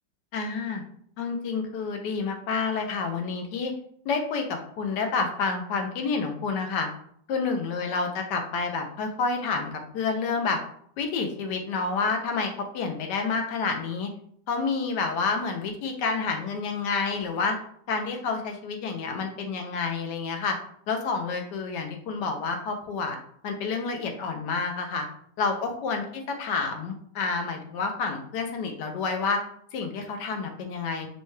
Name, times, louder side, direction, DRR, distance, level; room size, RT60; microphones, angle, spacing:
voice 1, 0.3-0.8 1.2-3.7 4.0-6.9 7.3-10.6 11.0-14.1 14.5-17.6 17.9-20.6 20.9-23.2 23.4-25.1 25.4-29.4 29.7-31.1, left 4 dB, 75° left, 4 dB, 1.2 m, -29 dB
5.4 x 2.2 x 3.2 m, 0.63 s
omnidirectional pair, 2.0 m